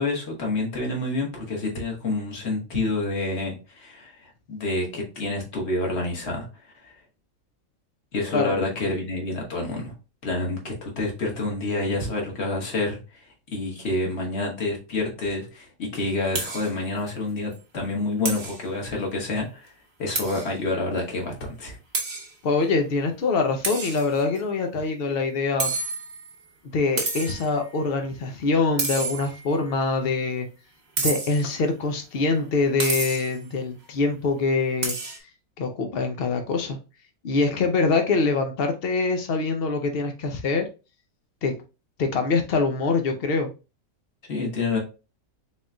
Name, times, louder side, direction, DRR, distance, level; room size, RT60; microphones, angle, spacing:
voice 1, 0.0-6.9 8.1-9.9 10.2-19.7 20.0-21.8 44.3-44.8, left 2 dB, 45° left, 0 dB, 1.3 m, -28 dB
sound 1, 16.3-16.7 17.1-17.2 17.5-17.6 18.2-18.6 20.1-20.5 21.0-21.1 21.9-22.3 23.6-24.4 25.6-26.3 27.0-27.5 28.8-29.5 31.0-31.5 32.8-33.4 34.8-35.2, right 3 dB, 35° right, 0.8 m, -29 dB
voice 2, 22.4-25.7 26.7-30.5 31.0-34.9 35.6-36.8 37.2-40.6 41.4-41.5 42.0-43.5, left 3 dB, 90° left, 5 dB, 0.5 m, -24 dB
4.1 x 3.7 x 2.3 m, 0.30 s
omnidirectional pair, 1.8 m